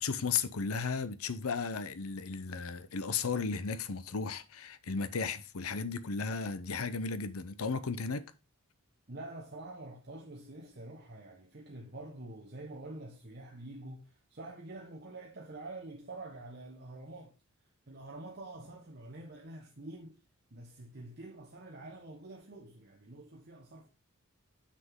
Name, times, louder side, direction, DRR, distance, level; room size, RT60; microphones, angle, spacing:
voice 1, 0.0-8.3, left 5 dB, 75° left, 0.7 m, -35 dB
voice 2, 9.1-17.4 17.9-20.2 20.5-23.9, right 2 dB, 50° right, 1.2 m, -47 dB
7.7 x 6.5 x 3.7 m
head